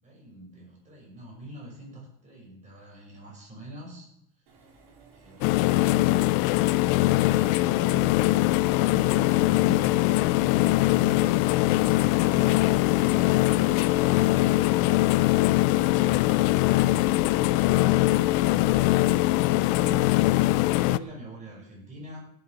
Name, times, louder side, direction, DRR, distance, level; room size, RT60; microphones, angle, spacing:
voice 1, 0.0-4.1 4.4-4.7 5.1-6.1 7.1-8.2 8.8-15.0 15.7-17.1 18.2-22.2, right 1 dB, 25° right, -1 dB, 6.3 m, -44 dB
Accelerating revving vroom, 4.5-19.0, right 3 dB, 90° right, 4.3 m, -49 dB
sound 1, 5.4-21.0, left 17 dB, 65° left, 0.5 m, -22 dB
16.5 x 9.2 x 6.1 m, 0.77 s
cardioid pair, 160°, 29 cm